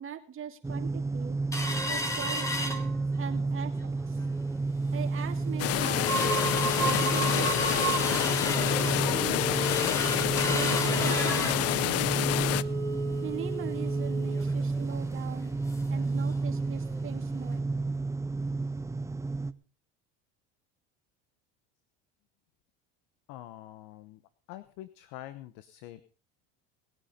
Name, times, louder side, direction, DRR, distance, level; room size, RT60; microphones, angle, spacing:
voice 1, 0.0-1.4 1.8-4.2 4.9-6.1 6.7-8.3 9.1-9.7 10.5-12.4 13.2-15.5 15.9-17.7, right 9 dB, 40° right, 6 dB, 2.4 m, -41 dB
sound 1, 0.6-19.5, right 3 dB, 10° right, 0.8 m, -32 dB
sound 2, 1.5-3.4 3.8-3.9 4.2-4.6 5.1-5.2 5.5-16.0 16.4-16.5 16.8-17.0 17.5-17.6, right 1 dB, 10° left, 3.0 m, -33 dB
sound 3, 5.6-12.6, left 16 dB, 50° left, 0.6 m, -28 dB
voice 2, 23.3-24.2 24.5-26.0, left 14 dB, 70° left, 13 dB, 1.1 m, -45 dB
20.0 x 8.8 x 5.2 m, 0.38 s
supercardioid pair, 100°, 31 cm